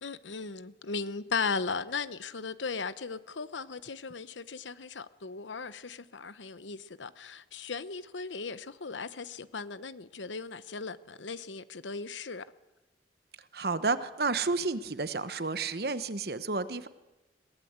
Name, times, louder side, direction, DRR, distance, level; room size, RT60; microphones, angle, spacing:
voice 1, 0.0-12.4, left 4 dB, 90° left, 0.9 m, -37 dB
voice 2, 13.5-16.9, right 3 dB, 55° right, 1.1 m, -31 dB
22.0 x 18.5 x 8.1 m
head